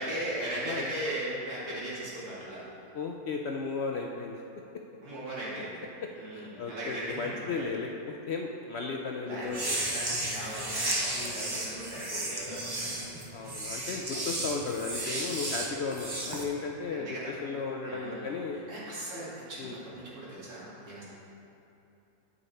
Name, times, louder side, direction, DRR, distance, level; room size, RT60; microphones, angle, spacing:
voice 1, 0.0-2.6 5.0-5.8 6.1-7.5 9.2-13.6 16.9-17.3 17.8-18.4 18.7-21.0, right 1 dB, 85° right, -8 dB, 2.8 m, -38 dB
voice 2, 2.9-4.4 6.0-9.6 11.1-11.4 13.3-18.6 19.6-19.8, left 4 dB, 65° left, 1 dB, 0.6 m, -35 dB
sound 1, 9.5-16.4, right 1 dB, 20° right, 0.6 m, -34 dB
8.9 x 6.6 x 4.2 m, 2.8 s
omnidirectional pair, 1.6 m